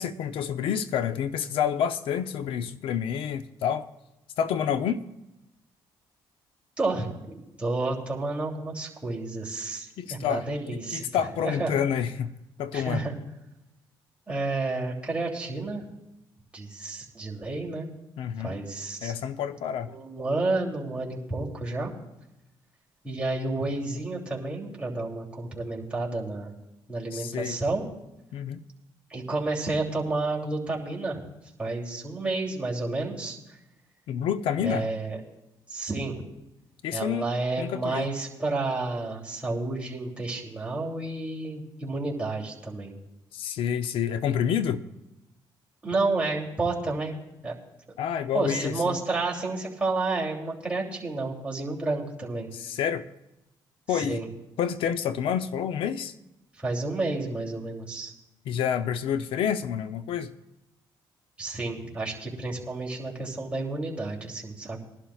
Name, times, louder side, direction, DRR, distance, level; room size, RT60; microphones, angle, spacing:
voice 1, 0.0-3.9 4.4-5.0 10.0-10.4 10.7-12.3 12.6-13.1 18.2-18.6 19.0-19.9 27.1-27.6 28.3-28.6 34.1-34.9 36.8-37.3 37.6-38.1 43.3-44.8 48.0-49.0 52.5-53.0 53.9-54.2 54.6-56.1 58.5-60.3, left 8 dB, 80° left, 11 dB, 0.7 m, -28 dB
voice 2, 6.8-11.0 11.4-11.7 12.7-13.1 14.3-15.8 16.5-17.9 18.4-19.1 19.9-21.9 23.0-26.5 26.9-27.8 29.1-31.2 31.6-33.6 34.6-35.2 35.7-36.2 36.9-42.9 45.8-47.2 47.4-47.5 48.3-52.5 53.9-54.3 56.6-58.1 61.4-64.8, right 2 dB, 15° right, -3 dB, 2.9 m, -30 dB
21.0 x 11.5 x 2.4 m, 0.94 s
cardioid pair, 90°, 9 cm